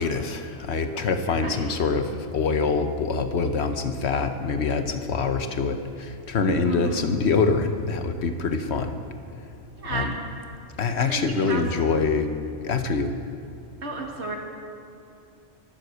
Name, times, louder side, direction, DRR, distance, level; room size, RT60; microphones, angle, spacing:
voice 1, 0.0-8.9 9.9-10.1 10.8-12.3 12.6-13.1, left 4 dB, 75° left, 8 dB, 1.1 m, -25 dB
voice 2, 6.6-7.1 9.8-10.1 11.0-11.6 13.8-14.4, right 3 dB, 80° right, 0 dB, 2.3 m, -32 dB
23.0 x 7.9 x 8.0 m, 2.6 s
omnidirectional pair, 1.1 m